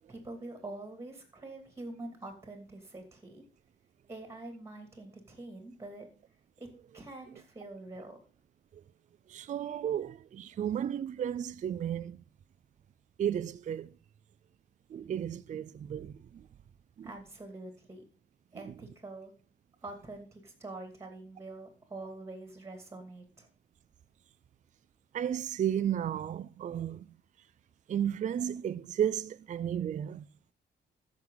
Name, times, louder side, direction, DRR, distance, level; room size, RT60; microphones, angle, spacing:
voice 1, 0.1-3.4 4.1-6.1 6.6-6.7 6.9-8.2 17.0-18.0 18.5-19.3 19.8-23.5, right 2 dB, 15° right, 2.6 m, -45 dB
voice 2, 9.3-12.2 13.2-13.9 14.9-16.5 17.0-17.1 18.5-18.7 25.1-27.1 27.9-30.3, right 9 dB, 40° right, 0.4 m, -33 dB
14.0 x 6.1 x 3.9 m
cardioid pair, 135°, 19 cm